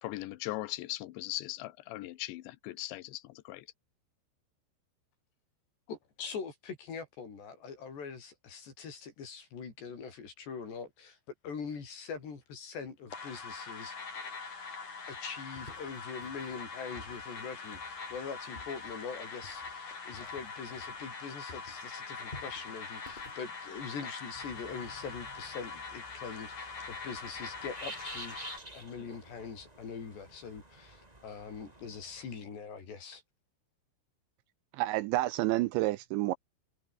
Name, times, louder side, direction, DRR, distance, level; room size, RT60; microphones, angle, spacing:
voice 1, 0.0-3.7, left 17 dB, 75° left, 3.1 m, -39 dB
voice 2, 5.9-11.2 11.4-14.0 15.1-28.4 28.7-33.2, left 6 dB, 60° left, 7.1 m, -43 dB
sound 1, 13.1-28.6, left 4 dB, 40° left, 6.3 m, -43 dB
sound 2, 15.5-21.2 21.5-24.4, left 2 dB, 10° left, 2.8 m, -54 dB
sound 3, 24.3-32.3, right 1 dB, 10° right, 2.8 m, -50 dB
voice 3, 34.7-36.3, right 18 dB, 85° right, 2.7 m, -29 dB
omnidirectional pair, 5.8 m